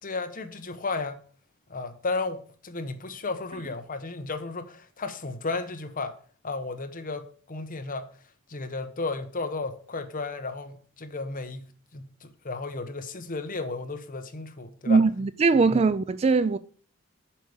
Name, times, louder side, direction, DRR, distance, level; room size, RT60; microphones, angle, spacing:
voice 1, 0.0-1.2 1.7-6.2 6.4-8.1 8.5-15.0 15.5-15.7, left 3 dB, 40° left, 1.0 m, -34 dB
voice 2, 14.9-16.6, right 4 dB, 30° right, 0.3 m, -21 dB
7.5 x 5.0 x 6.9 m
head